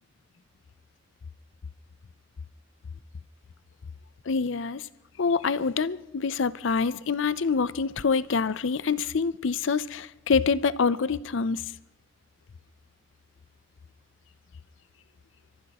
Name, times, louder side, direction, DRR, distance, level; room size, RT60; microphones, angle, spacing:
voice 1, 4.3-4.8 5.2-11.6, left 5 dB, 65° left, 17 dB, 0.5 m, -26 dB
29.5 x 14.5 x 3.0 m, 0.94 s
head